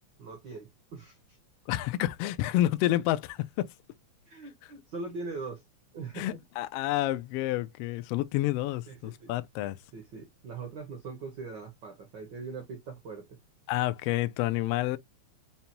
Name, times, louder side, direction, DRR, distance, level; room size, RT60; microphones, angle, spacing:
voice 1, 0.2-1.4 4.3-5.6 5.9-6.3 8.9-9.3 9.9-13.4, right 4 dB, 75° right, 1.0 m, -41 dB
voice 2, 1.7-3.7 6.1-9.8 13.7-15.0, left 15 dB, 85° left, 1.3 m, -29 dB
5.4 x 2.2 x 2.9 m
omnidirectional pair, 3.3 m